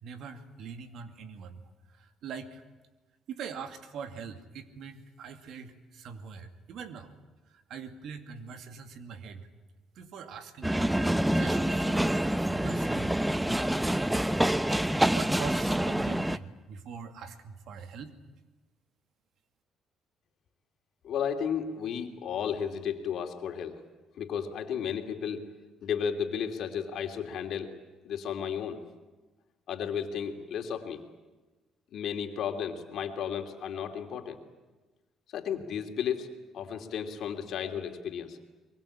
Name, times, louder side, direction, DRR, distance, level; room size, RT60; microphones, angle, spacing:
voice 1, 0.0-1.6 1.9-2.6 3.3-7.1 7.5-9.5 10.0-12.0 12.5-13.2 13.5-13.6 15.0-18.2, right 6 dB, 70° right, 7 dB, 2.4 m, -43 dB
sound 1, 10.6-16.4, right 1 dB, 5° right, 0.9 m, -27 dB
voice 2, 21.0-23.8 24.2-25.5 25.8-27.7 28.0-28.8 29.7-31.0 31.9-34.4 35.3-36.3 36.5-38.4, left 8 dB, 65° left, 4 dB, 3.0 m, -33 dB
23.5 x 23.0 x 8.8 m, 1.2 s
supercardioid pair, 60°, 0 cm